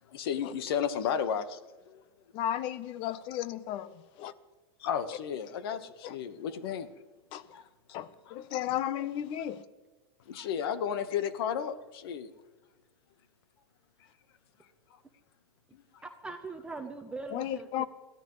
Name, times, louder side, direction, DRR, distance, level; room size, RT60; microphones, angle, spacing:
voice 1, 0.1-1.6 1.8-2.0 4.8-6.9 7.5-7.7 10.3-12.3 15.7-16.0, left 8 dB, 70° left, 1.3 m, -33 dB
voice 2, 2.3-4.3 6.0-6.1 7.3-7.5 7.9-9.6 17.3-17.9, left 11 dB, 40° left, 0.8 m, -34 dB
voice 3, 16.0-17.9, right 3 dB, 10° right, 0.8 m, -41 dB
22.0 x 14.5 x 3.2 m
supercardioid pair, 145°, 13 cm